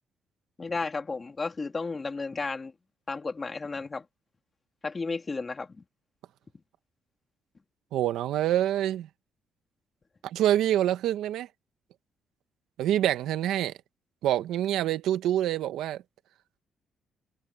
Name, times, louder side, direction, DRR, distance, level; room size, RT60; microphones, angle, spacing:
voice 1, 0.6-2.7 3.1-4.0 4.8-5.8, left 4 dB, 30° left, 3.0 m, -33 dB
voice 2, 7.9-9.1 10.2-11.5 12.8-13.7 14.2-16.0, right 12 dB, 85° right, 1.4 m, -26 dB
cardioid pair, 90°, 0 cm